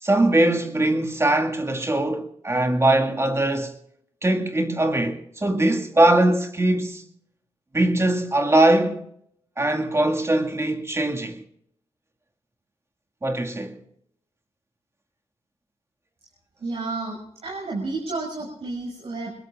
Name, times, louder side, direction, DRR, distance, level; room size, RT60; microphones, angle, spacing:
voice 1, 0.0-3.8 4.2-7.0 7.7-9.0 9.6-11.4 13.2-13.8, right 1 dB, 25° right, 2.1 m, -21 dB
voice 2, 16.6-19.4, right 3 dB, 65° right, 6.4 m, -31 dB
25.5 x 21.0 x 2.5 m
cardioid pair, 70°, 11 cm